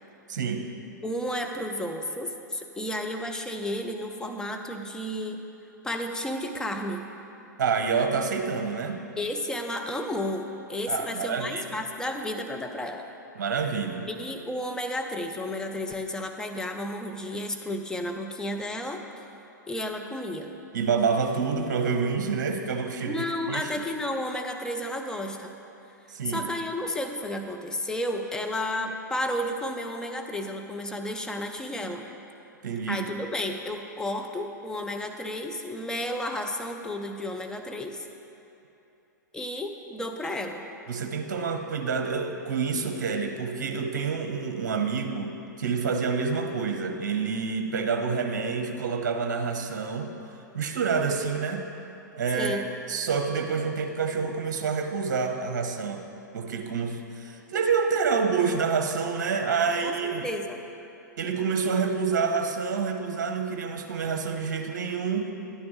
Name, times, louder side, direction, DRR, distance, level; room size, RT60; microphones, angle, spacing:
voice 1, 0.3-0.6 7.6-9.1 10.9-11.6 13.4-14.1 20.7-23.7 26.1-26.4 32.6-33.1 40.9-45.3 45.6-50.1 50.5-51.7 52.1-56.0 56.3-60.3 61.2-65.3, right 5 dB, 60° right, 5 dB, 0.9 m, -28 dB
voice 2, 1.0-5.4 5.8-7.1 9.2-13.1 14.1-19.0 19.7-20.5 23.0-25.5 26.2-32.1 32.9-38.1 39.3-40.6 52.3-52.7 59.8-60.6, left 1 dB, 5° left, 4 dB, 0.6 m, -32 dB
11.0 x 9.4 x 3.2 m, 2.9 s
figure-of-eight pair, 110°, 10 cm